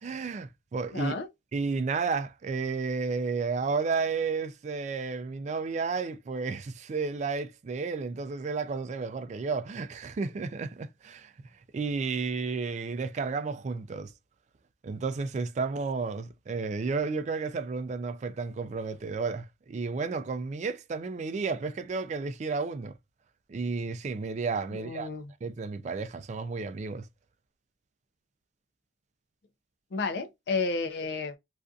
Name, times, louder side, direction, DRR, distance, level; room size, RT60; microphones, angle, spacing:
voice 1, 0.0-1.1 1.5-11.3 11.7-14.1 14.8-23.0 23.5-25.1 25.4-27.1, right 4 dB, 40° right, 0.3 m, -32 dB
voice 2, 0.9-1.3 24.7-25.3 29.9-31.4, left 4 dB, 65° left, 0.4 m, -31 dB
2.5 x 2.4 x 2.3 m
head